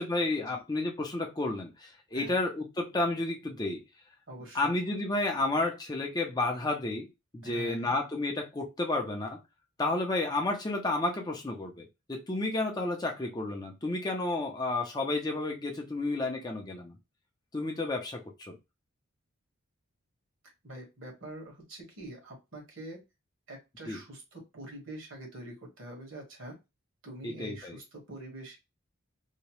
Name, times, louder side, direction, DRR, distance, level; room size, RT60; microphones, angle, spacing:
voice 1, 0.0-3.8 4.5-7.1 7.3-9.4 9.8-16.9 17.5-18.5 23.9-24.0 27.2-27.8, left 2 dB, 20° left, 1 dB, 0.4 m, -31 dB
voice 2, 4.3-4.8 7.4-7.9 20.6-23.0 23.5-26.6 27.0-28.6, right 1 dB, 65° right, 0 dB, 1.3 m, -45 dB
2.8 x 2.0 x 2.9 m, 0.24 s
head